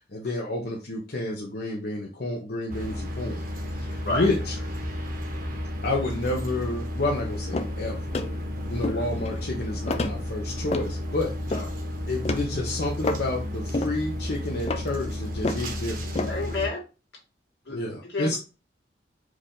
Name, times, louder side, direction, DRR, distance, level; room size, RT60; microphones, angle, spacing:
voice 1, 0.0-3.4 3.8-4.5 5.8-8.2 8.7-11.4 12.1-16.0 17.7-18.4, left 2 dB, 60° left, -3 dB, 0.8 m, -30 dB
sound 1, 2.7-16.7, left 1 dB, 50° right, 1.0 m, -32 dB
sound 2, 7.5-7.8 8.1-8.4 8.8-9.4 9.9-10.9 11.4-11.8 12.2-12.5 13.0-13.3 13.7-14.0 14.3-15.7 16.1-16.3, left 2 dB, 35° left, 0.4 m, -30 dB
voice 2, 16.2-16.8 17.7-18.4, left 3 dB, 80° left, -3 dB, 1.9 m, -31 dB
4.7 x 2.6 x 3.6 m, 0.31 s
head